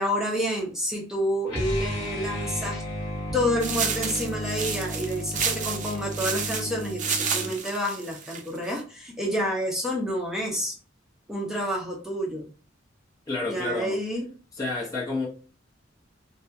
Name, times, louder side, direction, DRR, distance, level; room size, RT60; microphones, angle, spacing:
voice 1, 0.0-2.8 3.3-10.8 11.3-12.5 13.4-14.3, equal, ahead, 0.6 m, -29 dB
sound 1, 1.5-7.6, equal, 60° left, 1.1 m, -33 dB
sound 2, 3.6-8.8, right 6 dB, 40° right, 0.5 m, -31 dB
voice 2, 13.3-14.0 14.5-15.3, left 2 dB, 20° left, 0.9 m, -29 dB
3.3 x 2.3 x 2.8 m
head